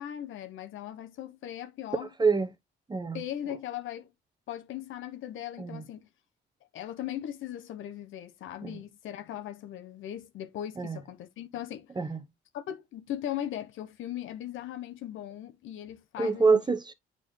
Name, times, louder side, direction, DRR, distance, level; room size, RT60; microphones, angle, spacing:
voice 1, 0.0-2.1 3.1-4.1 4.5-6.1 6.7-11.9 12.5-16.6, left 11 dB, 80° left, 1.0 m, -38 dB
voice 2, 2.0-2.5 2.9-3.2 5.6-5.8 8.6-8.8 10.8-11.0 12.0-12.2 16.2-16.9, right 4 dB, 20° right, 0.9 m, -26 dB
8.7 x 4.0 x 3.2 m
cardioid pair, 90°, 20 cm